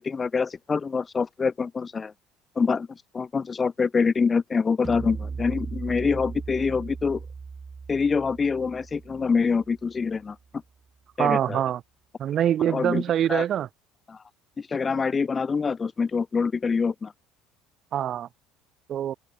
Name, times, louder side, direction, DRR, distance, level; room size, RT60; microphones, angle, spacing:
voice 1, 0.0-2.1 2.6-7.2 7.9-10.4 11.2-11.6 12.6-13.0 13.3-13.4 14.1-14.2 14.6-17.1, left 5 dB, 20° left, 0.5 m, -25 dB
sound 1, 4.8-10.2, right 5 dB, 20° right, 2.7 m, -38 dB
voice 2, 11.2-11.8 12.2-13.7 17.9-18.3 18.9-19.1, right 10 dB, 45° right, 0.8 m, -24 dB
cardioid pair, 125°, 0 cm